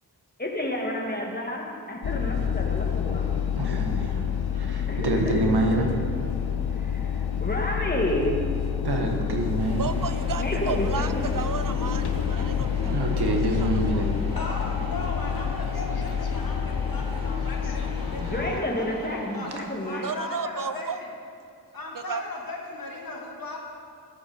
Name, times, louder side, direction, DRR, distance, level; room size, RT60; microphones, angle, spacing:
voice 1, 0.4-3.3 4.9-5.4 5.7-6.0 6.7-8.4 10.3-11.6 18.2-20.2, left 1 dB, 25° left, 0 dB, 2.3 m, -30 dB
sound 1, 2.0-18.6, left 8 dB, 80° left, 0.9 m, -28 dB
voice 2, 3.6-5.9 8.8-9.9 12.9-14.3 19.5-19.6, right 2 dB, 90° right, 2 dB, 1.6 m, -27 dB
sound 2, 9.6-19.5, equal, 15° right, 2.5 m, -41 dB
voice 3, 9.8-14.1 20.0-21.0 21.9-22.2, right 6 dB, 60° right, 10 dB, 0.7 m, -34 dB
voice 4, 14.4-18.9 19.1-19.5 19.8-21.1 21.7-23.6, left 2 dB, 65° left, -2 dB, 2.6 m, -37 dB
15.5 x 10.5 x 4.5 m, 2.3 s
cardioid pair, 50°, 38 cm